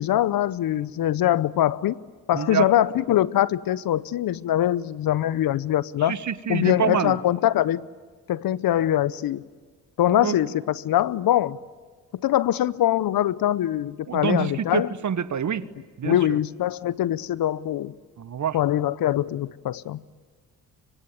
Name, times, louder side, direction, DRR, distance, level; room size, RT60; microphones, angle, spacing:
voice 1, 0.0-2.0 2.3-6.2 6.5-7.9 8.3-9.5 10.0-11.6 12.1-14.9 16.0-17.9 18.5-20.0, left 12 dB, 65° left, 0.8 m, -23 dB
voice 2, 2.3-2.7 6.1-7.2 10.2-10.4 14.1-15.6 16.0-16.4 18.2-18.6, right 8 dB, 50° right, 1.3 m, -26 dB
25.0 x 24.0 x 9.6 m
supercardioid pair, 55°, 38 cm